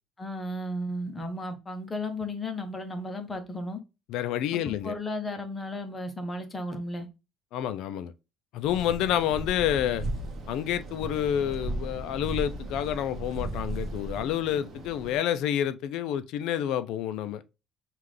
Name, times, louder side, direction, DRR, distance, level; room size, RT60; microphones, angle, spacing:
voice 1, 0.2-3.8 4.5-7.1, left 1 dB, 15° left, 0.7 m, -34 dB
voice 2, 4.1-5.0 7.5-8.1 8.5-10.0 10.5-17.4, left 10 dB, 70° left, 0.4 m, -29 dB
sound 1, 8.6-15.2, right 1 dB, 35° right, 1.1 m, -36 dB
5.6 x 2.4 x 3.2 m
cardioid pair, 170°, 0 cm